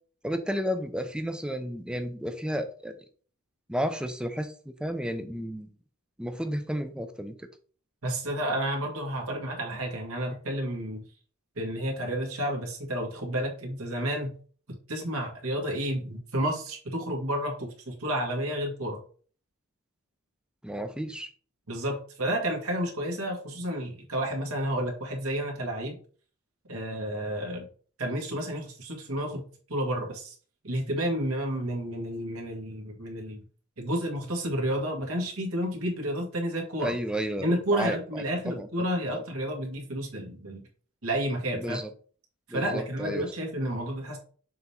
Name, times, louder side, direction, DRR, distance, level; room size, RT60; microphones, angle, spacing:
voice 1, 0.2-2.9 3.7-5.7 6.2-7.3 20.6-21.3 36.8-38.7 39.1-39.2 41.5-41.9 42.5-43.3, equal, 5° right, 8 dB, 0.6 m, -32 dB
voice 2, 8.0-11.0 11.6-14.3 14.9-19.0 21.7-26.0 26.7-27.7 28.0-29.4 29.7-30.3 30.6-33.4 33.8-37.0 37.4-40.6 41.0-41.8 42.5-44.2, right 1 dB, 70° right, 0 dB, 2.1 m, -31 dB
6.8 x 3.6 x 4.3 m, 0.43 s
head